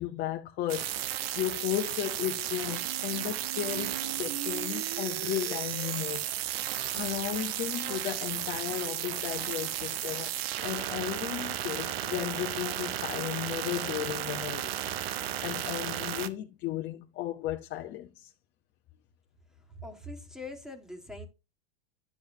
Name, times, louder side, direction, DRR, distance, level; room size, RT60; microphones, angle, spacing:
voice 1, 0.0-6.2 6.9-14.8 15.1-18.3, left 13 dB, 35° left, 0.9 m, -35 dB
sound 1, 0.7-16.3, right 12 dB, 75° right, 1.0 m, -34 dB
sound 2, 2.7-8.6, right 10 dB, 35° right, 0.7 m, -44 dB
voice 2, 19.5-21.3, left 1 dB, ahead, 1.6 m, -43 dB
10.5 x 7.3 x 2.7 m
supercardioid pair, 135°, 30 cm